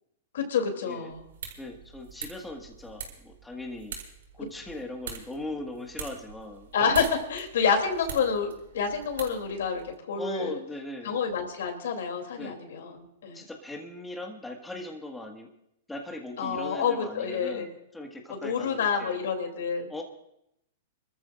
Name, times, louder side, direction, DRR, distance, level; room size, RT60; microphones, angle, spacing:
voice 1, 0.3-1.2 6.7-8.5 8.7-10.6 11.0-13.4 16.4-17.7 18.4-20.0, left 6 dB, 75° left, 4 dB, 3.1 m, -28 dB
sound 1, 1.1-9.9, right 6 dB, 85° right, 6.5 m, -43 dB
voice 2, 1.6-3.9 4.4-6.7 10.2-11.2 12.4-12.6 13.3-15.5 15.9-19.2 19.9-20.0, left 1 dB, 5° left, 1 dB, 1.8 m, -39 dB
29.5 x 14.0 x 2.6 m, 0.77 s
hypercardioid pair, 135°, 0 cm